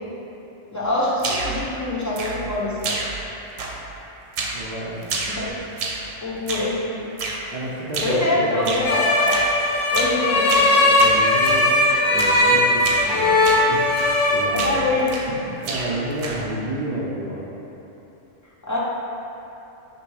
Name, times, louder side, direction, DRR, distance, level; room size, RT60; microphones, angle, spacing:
voice 1, 0.7-3.0 5.3-5.5 6.2-7.1 8.0-9.6 9.9-11.0 14.4-15.1 18.6-18.8, left 2 dB, 20° left, -8 dB, 0.5 m, -24 dB
sound 1, 1.2-1.7 2.2-2.6 2.8-3.3 3.6-4.0 4.4-4.7 5.0-6.1 6.5-6.8 7.2-7.4 7.9-8.2 8.7-8.9 9.3-9.5 9.9-10.2 10.5-11.6 12.2-12.5 12.8-13.1 13.4-13.7 14.0-14.3 14.6-15.4 15.6-16.5, right 3 dB, 75° right, 0.9 m, -29 dB
voice 2, 4.5-5.1 7.5-8.9 11.0-11.7 12.1-13.4 13.7-14.0 14.3-14.8 15.3-17.4, right 1 dB, 55° right, -7 dB, 0.5 m, -30 dB
sound 2, 8.8-14.4, left 2 dB, 80° left, 1.0 m, -18 dB
3.3 x 3.0 x 4.7 m, 3.0 s
omnidirectional pair, 1.2 m